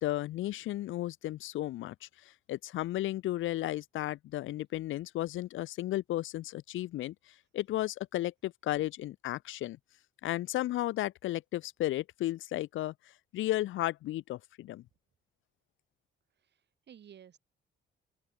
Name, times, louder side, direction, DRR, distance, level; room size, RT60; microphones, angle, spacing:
voice 1, 0.0-1.9 2.5-7.1 7.5-9.8 10.2-12.9 13.3-14.8, left 15 dB, 80° left, 1.0 m, -34 dB
voice 2, 16.4-17.4, right 9 dB, 60° right, 4.6 m, -55 dB
open air
cardioid pair, 90°, 20 cm